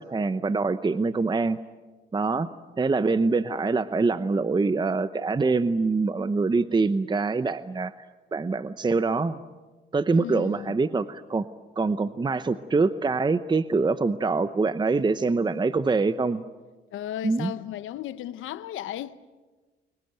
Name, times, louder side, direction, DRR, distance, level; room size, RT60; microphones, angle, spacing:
voice 1, 0.0-1.6 2.1-2.5 2.8-7.9 8.3-9.4 9.9-11.5 11.8-16.4 17.2-17.5, right 3 dB, 20° right, 0.8 m, -24 dB
voice 2, 10.1-10.8 16.9-19.2, left 12 dB, 85° left, 0.9 m, -35 dB
30.0 x 22.0 x 7.9 m
cardioid pair, 90°, 20 cm